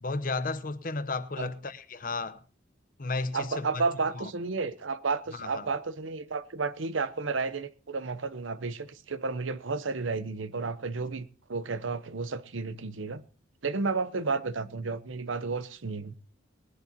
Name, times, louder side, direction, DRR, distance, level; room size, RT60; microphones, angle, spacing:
voice 1, 0.0-2.4 3.0-3.8 4.1-4.3 5.3-5.7, left 3 dB, 45° left, 0.9 m, -33 dB
voice 2, 3.3-13.2 13.6-16.1, right 4 dB, 85° right, 0.8 m, -32 dB
20.5 x 11.0 x 2.9 m
head